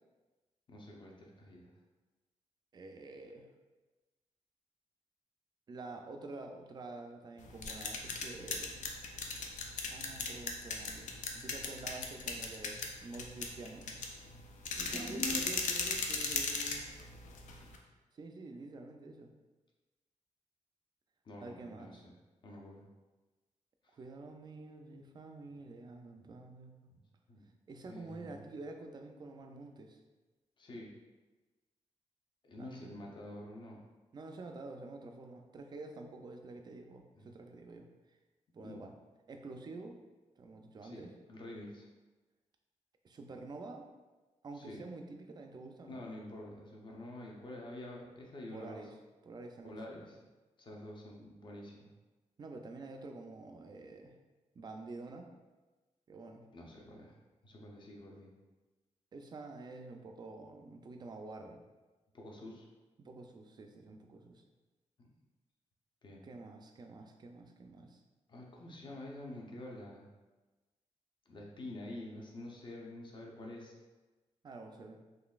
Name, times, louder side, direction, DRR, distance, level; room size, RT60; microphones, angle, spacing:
voice 1, 0.7-1.7 14.8-15.5 21.2-22.1 22.4-22.9 23.8-24.0 26.2-26.3 27.3-27.5 27.9-28.4 30.6-30.9 32.4-33.8 37.1-37.3 38.6-38.8 40.8-41.9 44.5-44.8 45.9-48.8 49.6-50.2 50.6-51.9 56.5-57.1 57.4-58.3 62.1-62.7 65.0-65.1 66.0-66.3 68.3-70.1 71.3-73.7, left 1 dB, 40° left, -1 dB, 0.6 m, -47 dB
voice 2, 2.7-3.5 5.7-8.8 9.9-13.9 14.8-16.9 18.1-19.3 21.4-22.0 23.9-26.9 27.7-30.0 32.6-33.0 34.1-37.9 38.5-38.9 39.3-40.0 40.4-41.1 43.0-43.9 44.4-46.0 48.5-48.9 49.2-49.9 52.4-54.2 54.5-55.3 56.1-56.5 59.1-61.6 63.0-64.4 66.2-68.0 74.4-75.0, right 3 dB, 35° right, 4 dB, 0.3 m, -48 dB
sound 1, 7.4-17.8, left 4 dB, 80° left, 0.5 m, -38 dB
3.9 x 3.1 x 2.3 m, 1.2 s
wide cardioid pair, 150°, 13 cm